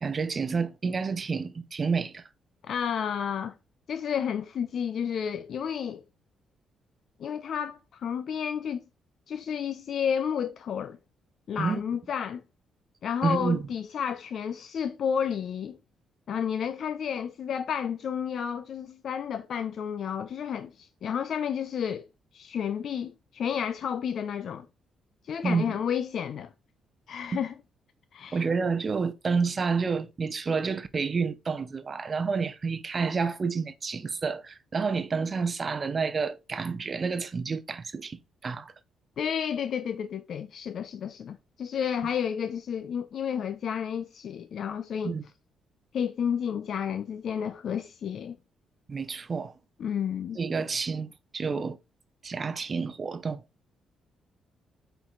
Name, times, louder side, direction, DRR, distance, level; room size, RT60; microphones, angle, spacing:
voice 1, 0.0-2.2 11.6-11.8 13.2-13.6 25.4-25.8 28.3-38.7 45.0-45.2 48.9-49.5 50.4-51.1 51.3-51.8 52.2-53.4, right 5 dB, 30° right, 0.7 m, -29 dB
voice 2, 2.6-3.5 3.9-6.0 7.2-8.8 9.3-11.0 11.5-12.4 13.0-15.8 16.3-22.1 22.3-24.7 25.3-26.5 27.1-27.5 28.1-28.4 39.2-45.1 45.9-48.4 49.8-50.4, left 8 dB, 55° left, 0.6 m, -31 dB
8.3 x 4.6 x 3.8 m
cardioid pair, 150°, 0 cm